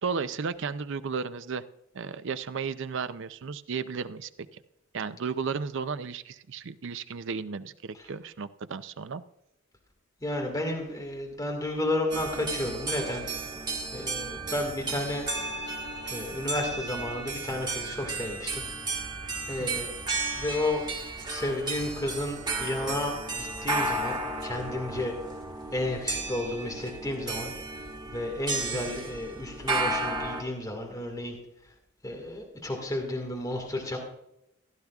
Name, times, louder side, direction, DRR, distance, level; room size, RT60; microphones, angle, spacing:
voice 1, 0.0-1.6 1.9-4.3 4.9-9.2 19.6-19.9 28.9-29.0, right 5 dB, 65° right, 13 dB, 0.5 m, -34 dB
voice 2, 10.2-13.2 13.9-15.3 16.0-18.6 19.5-19.9 20.4-20.8 21.2-25.1 25.7-27.5 28.1-31.4 32.0-34.0, left 1 dB, 20° left, 0 dB, 1.8 m, -32 dB
sound 1, 12.1-30.4, right 2 dB, 20° right, 1.5 m, -33 dB
15.5 x 11.5 x 2.4 m, 0.83 s
head